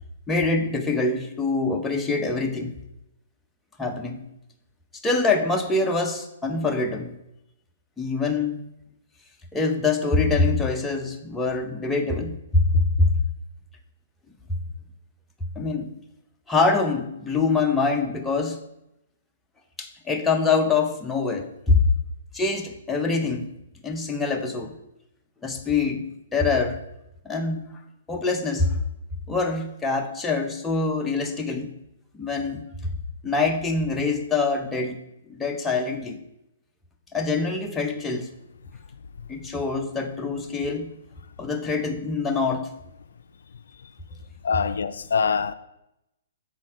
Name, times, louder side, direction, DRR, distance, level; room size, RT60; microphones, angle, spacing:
voice 1, 0.3-2.7 3.8-4.2 5.0-7.1 8.0-8.6 9.5-13.1 15.6-15.9 16.5-18.6 19.8-21.8 22.3-23.5 23.8-24.7 25.4-26.8 27.2-27.7 28.1-28.8 29.3-31.7 32.1-32.9 33.2-35.0 35.4-36.2 37.1-38.3 39.3-40.9 41.4-42.7, left 3 dB, 10° left, 0.7 m, -24 dB
voice 2, 44.4-45.5, left 6 dB, 80° left, 0.3 m, -24 dB
6.4 x 4.2 x 4.9 m
hypercardioid pair, 135°, 0 cm